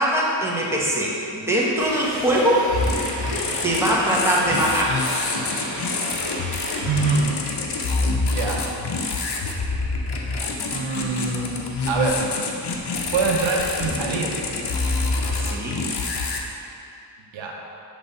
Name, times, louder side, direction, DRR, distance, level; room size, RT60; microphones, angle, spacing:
voice 1, 0.0-2.6 3.6-5.0 15.4-15.8, right 1 dB, 5° right, -5 dB, 1.2 m, -22 dB
sound 1, 1.8-7.2, right 1 dB, 40° right, 1.2 m, -33 dB
sound 2, 2.7-16.4, left 3 dB, 60° left, 0.8 m, -26 dB
voice 2, 6.8-7.3 8.2-8.6 10.7-12.2 13.1-14.3 17.3-17.6, right 4 dB, 90° right, 0 dB, 0.8 m, -24 dB
5.9 x 3.4 x 5.4 m, 2.7 s
wide cardioid pair, 80°, 45 cm